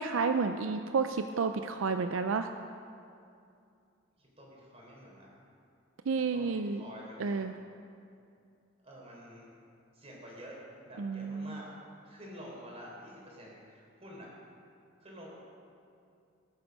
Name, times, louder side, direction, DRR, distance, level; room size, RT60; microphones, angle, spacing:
voice 1, 0.0-2.5 6.1-6.8 7.2-7.5 11.0-11.6, right 4 dB, 75° right, 8 dB, 0.5 m, -31 dB
voice 2, 4.2-5.3 6.3-7.4 8.8-9.5 9.9-10.6 10.8-11.7 12.1-14.3 15.0-15.4, equal, 30° right, -3 dB, 3.6 m, -49 dB
19.5 x 8.0 x 5.3 m, 2.5 s
head